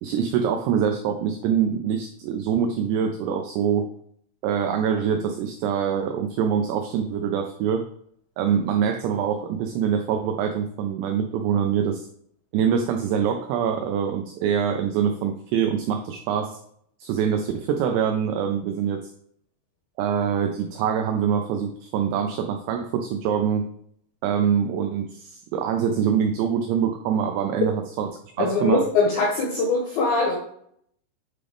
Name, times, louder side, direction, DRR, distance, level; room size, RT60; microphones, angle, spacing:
voice 1, 0.0-3.9 4.4-7.9 8.4-12.1 12.5-16.6 17.0-19.1 20.0-23.7 24.2-28.1 28.4-28.8, right 8 dB, 90° right, 5 dB, 2.4 m, -24 dB
voice 2, 28.4-30.4, left 3 dB, 75° left, -1 dB, 2.2 m, -22 dB
8.9 x 3.8 x 3.4 m, 0.66 s
omnidirectional pair, 5.5 m